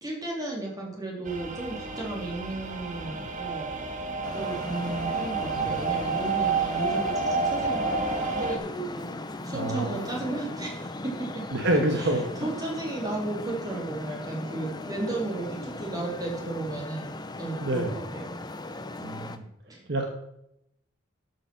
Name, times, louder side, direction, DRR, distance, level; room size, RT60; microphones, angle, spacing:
voice 1, 0.0-9.0 9.4-18.3 19.7-19.8, right 2 dB, 20° right, -2 dB, 3.1 m, -34 dB
sound 1, 1.3-8.6, right 4 dB, 40° right, 1.3 m, -30 dB
Traffic noise roadway noise, 4.2-19.4, left 2 dB, 20° left, 0.7 m, -38 dB
voice 2, 9.5-10.1 11.5-12.2 17.6-17.9 19.0-19.4 19.9-20.1, right 1 dB, 60° right, 3 dB, 1.5 m, -27 dB
12.5 x 6.2 x 6.0 m, 0.78 s
head